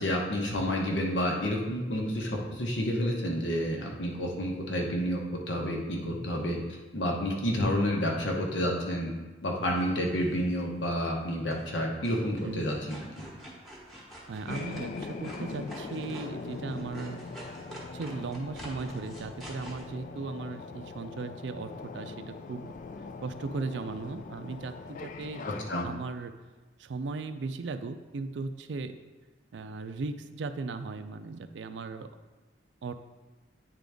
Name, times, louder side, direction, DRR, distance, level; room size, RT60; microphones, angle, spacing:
voice 1, 0.0-6.6 6.9-9.1 9.4-13.3 25.4-25.9, equal, 75° left, 0 dB, 1.1 m, -30 dB
sound 1, 9.8-10.6 11.5-11.8 12.0-19.8, right 1 dB, ahead, 1.1 m, -47 dB
voice 2, 14.3-17.3 17.9-22.7 23.2-25.5 25.8-26.4 26.8-28.9 29.5-32.1 32.8-32.9, right 3 dB, 75° right, 10 dB, 0.4 m, -37 dB
sound 2, 14.5-25.8, left 4 dB, 45° left, 0.3 m, -41 dB
8.8 x 3.8 x 3.5 m, 1.2 s
head